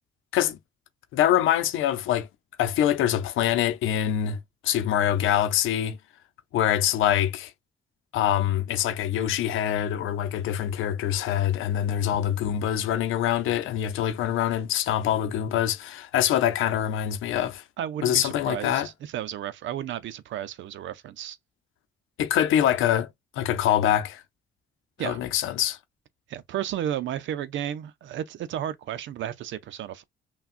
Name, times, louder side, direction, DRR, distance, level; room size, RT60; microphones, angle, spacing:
voice 1, 1.1-2.3 2.6-6.0 6.5-7.5 8.1-17.6 18.0-18.9 22.2-23.1 23.4-24.2 25.0-25.8, left 11 dB, 85° left, 0.7 m, -24 dB
voice 2, 17.8-21.4 25.0-25.2 26.3-30.0, right 11 dB, 70° right, 0.6 m, -33 dB
5.8 x 2.3 x 2.5 m
cardioid pair, 90°, 20 cm